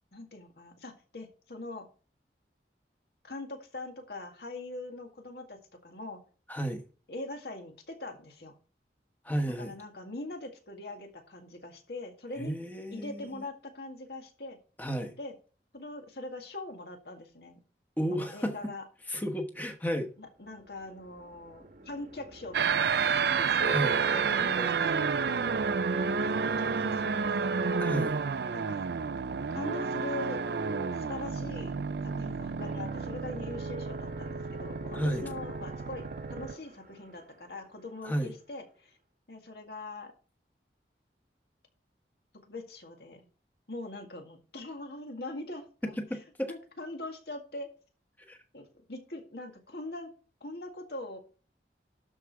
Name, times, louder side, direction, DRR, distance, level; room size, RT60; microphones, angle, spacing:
voice 1, 0.1-1.9 3.2-6.2 7.1-8.6 9.6-12.6 12.9-14.6 15.2-15.3 15.7-17.6 18.1-18.8 20.2-25.0 25.3-25.5 26.2-27.9 28.5-28.8 29.5-30.4 30.9-31.7 32.0-39.0 39.3-40.1 42.3-43.3 43.7-46.0 46.5-47.7 48.5-50.1 50.4-51.2, left 2 dB, 65° left, 2.0 m, -42 dB
voice 2, 6.5-6.8 9.2-9.7 12.4-13.4 14.8-15.2 18.0-18.5 19.1-20.1 23.7-24.0 27.8-28.1 34.9-35.3 38.0-38.3 46.0-46.5 48.3-48.4, equal, 10° left, 1.2 m, -32 dB
sound 1, 20.8-37.0, right 2 dB, 50° right, 1.1 m, -38 dB
sound 2, 22.5-36.5, right 6 dB, 65° right, 0.4 m, -31 dB
12.0 x 4.8 x 4.7 m
head